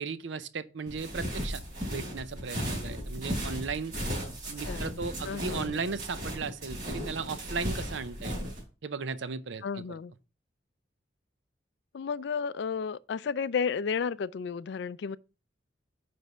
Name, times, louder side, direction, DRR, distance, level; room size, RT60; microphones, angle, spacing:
voice 1, 0.0-1.6 1.9-3.9 4.4-8.4 8.8-9.6, right 4 dB, 75° right, 0.6 m, -36 dB
sound 1, 0.9-8.6, equal, 45° right, 3.1 m, -36 dB
voice 2, 4.7-5.7 9.6-10.1 11.9-15.2, left 6 dB, 65° left, 0.3 m, -33 dB
9.2 x 3.4 x 5.3 m
head